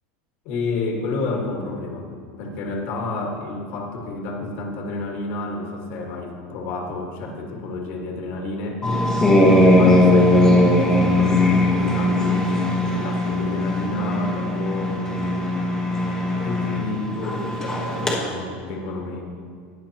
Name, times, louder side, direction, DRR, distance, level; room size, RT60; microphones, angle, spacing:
voice 1, 0.5-2.1 2.4-8.8 9.3-15.9 16.4-19.2, left 3 dB, 50° left, 1 dB, 1.8 m, -30 dB
sound 1, 8.8-18.1, left 1 dB, 10° left, 1.2 m, -19 dB
19.0 x 6.6 x 3.0 m, 2.1 s
supercardioid pair, 165°, 5 cm